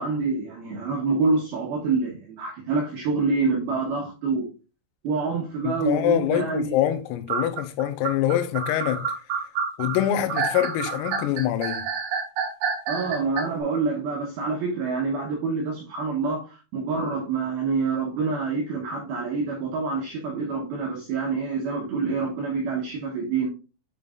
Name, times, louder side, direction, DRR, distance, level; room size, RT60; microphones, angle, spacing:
voice 1, 0.0-4.5 5.0-6.7 12.9-23.5, right 4 dB, 85° right, 2.2 m, -26 dB
voice 2, 5.6-9.0 9.8-11.9, left 11 dB, 90° left, 3.4 m, -25 dB
sound 1, 7.3-13.4, right 6 dB, 65° right, 2.6 m, -28 dB
7.9 x 5.4 x 2.4 m
omnidirectional pair, 5.8 m